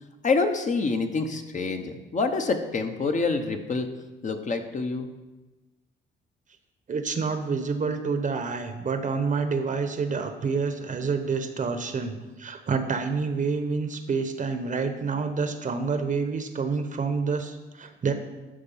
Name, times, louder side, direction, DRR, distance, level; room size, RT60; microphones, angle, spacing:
voice 1, 0.2-3.9 4.2-5.1, left 4 dB, 40° left, 5 dB, 1.0 m, -26 dB
voice 2, 6.9-18.1, right 5 dB, 40° right, 8 dB, 1.0 m, -28 dB
11.5 x 4.4 x 5.6 m, 1.2 s
cardioid pair, 90°, 20 cm